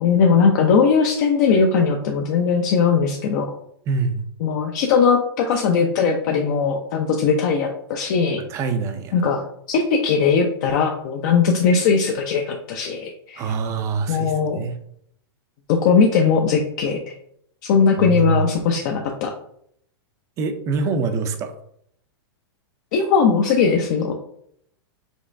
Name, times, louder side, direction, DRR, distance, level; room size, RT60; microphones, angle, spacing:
voice 1, 0.0-3.5 4.4-8.4 9.1-13.5 14.1-14.6 15.7-17.0 17.6-19.3 22.9-24.1, left 5 dB, 50° left, 2 dB, 0.5 m, -19 dB
voice 2, 3.9-4.2 8.5-9.1 13.4-14.7 18.0-18.4 20.4-21.5, right 4 dB, 25° right, 8 dB, 0.4 m, -24 dB
5.2 x 3.0 x 2.6 m, 0.70 s
hypercardioid pair, 150°, 13 cm